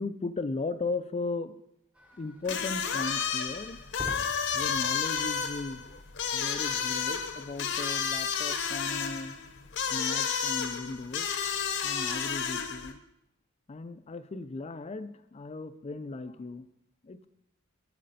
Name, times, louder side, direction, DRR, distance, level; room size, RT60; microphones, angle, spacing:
voice 1, 0.0-1.5 2.2-3.8 4.5-6.0 6.3-9.4 9.9-11.3 11.8-13.0 13.7-16.7 17.0-17.3, left 3 dB, 30° left, 12 dB, 0.4 m, -37 dB
sound 1, 1.9-9.9, equal, 5° right, 0.7 m, -50 dB
sound 2, 2.4-12.9, left 7 dB, 60° left, 0.8 m, -31 dB
7.5 x 7.5 x 4.1 m, 0.78 s
head